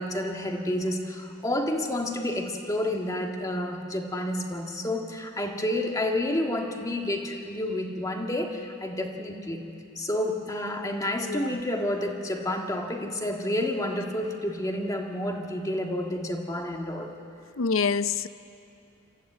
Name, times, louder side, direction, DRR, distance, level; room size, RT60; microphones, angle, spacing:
voice 1, 0.0-9.6 9.9-17.1, left 1 dB, 15° left, 2 dB, 1.7 m, -30 dB
voice 2, 11.2-11.6 17.6-18.3, left 5 dB, 80° left, 14 dB, 0.6 m, -26 dB
25.0 x 14.5 x 9.3 m, 2.6 s
head